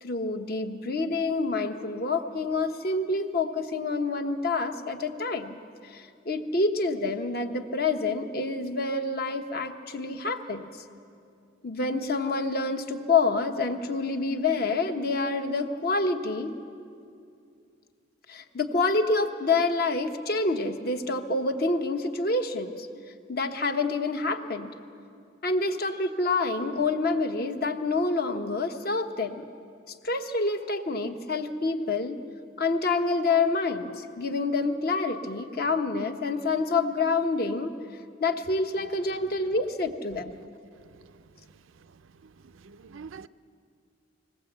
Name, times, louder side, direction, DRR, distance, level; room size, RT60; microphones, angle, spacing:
voice 1, 0.0-5.6 5.9-10.7 11.6-16.5 18.3-22.9 23.3-24.7 25.4-29.4 30.0-32.2 32.6-37.7 38.2-40.3, left 3 dB, 50° left, 6 dB, 1.0 m, -27 dB
voice 2, 42.6-43.3, right 5 dB, 85° right, 12 dB, 0.5 m, -44 dB
20.0 x 17.5 x 8.0 m, 2.4 s
head